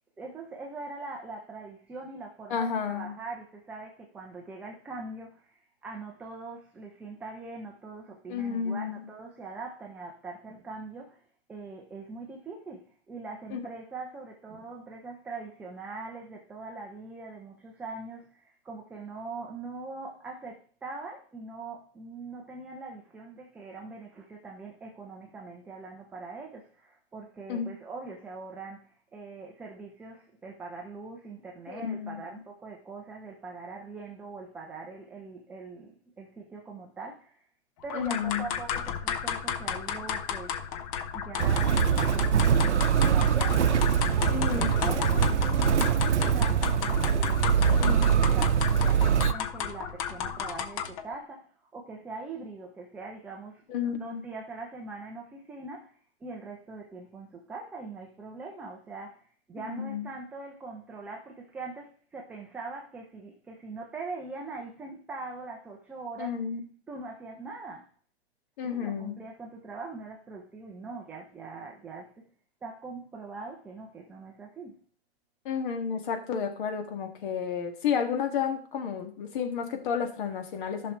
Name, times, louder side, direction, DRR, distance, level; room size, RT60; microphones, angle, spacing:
voice 1, 0.2-11.2 11.5-37.4 37.8-40.6 41.1-43.8 44.2-66.4 66.9-67.9 68.6-72.3 72.6-74.8, right 3 dB, 5° right, 0.5 m, -42 dB
voice 2, 2.5-3.1 8.3-9.0 13.5-13.6 27.5-27.7 31.7-32.2 37.9-38.5 44.3-44.7 47.8-48.0 53.7-54.2 59.7-60.1 66.2-66.6 68.6-69.2 75.5-80.9, left 7 dB, 45° left, 2.0 m, -31 dB
sound 1, 37.9-51.1, left 8 dB, 30° left, 0.7 m, -33 dB
Motor vehicle (road), 41.4-49.3, right 8 dB, 85° right, 0.7 m, -23 dB
14.0 x 6.1 x 3.2 m
hypercardioid pair, 140°, 34 cm